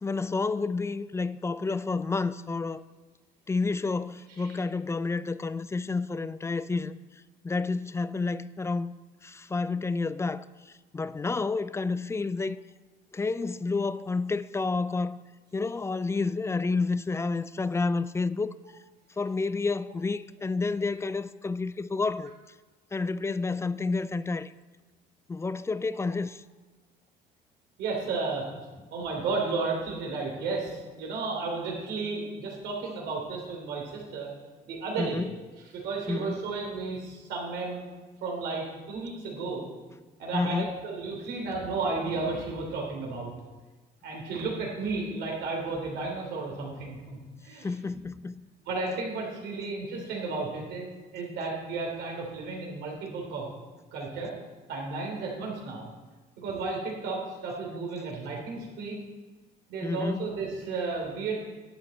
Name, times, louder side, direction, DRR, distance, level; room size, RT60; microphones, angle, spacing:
voice 1, 0.0-2.8 3.5-7.0 7.4-8.9 9.2-12.6 13.1-15.2 15.5-18.6 19.2-22.3 22.9-24.5 25.3-26.4 35.0-35.3 36.1-36.4 40.3-40.8 47.6-48.5 59.8-60.3, left 3 dB, 15° left, 0.3 m, -30 dB
voice 2, 27.8-28.5 28.9-34.3 34.6-35.2 35.7-37.8 38.2-39.7 40.2-43.3 44.0-48.0 48.6-50.9 51.1-53.5 53.9-54.3 54.7-55.9 56.4-59.0 59.7-61.5, right 3 dB, 85° right, 3.3 m, -33 dB
11.5 x 9.0 x 4.2 m
cardioid pair, 110°, 17 cm